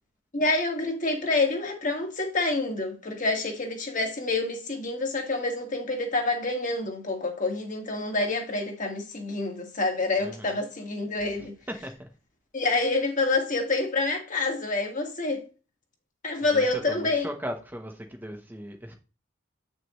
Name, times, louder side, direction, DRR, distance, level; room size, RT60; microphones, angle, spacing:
voice 1, 0.3-11.5 12.5-15.4 16.2-17.3, left 3 dB, 40° left, 1.8 m, -27 dB
voice 2, 10.2-10.6 11.4-12.1 16.5-18.9, equal, 10° right, 0.9 m, -38 dB
8.6 x 6.2 x 3.1 m
head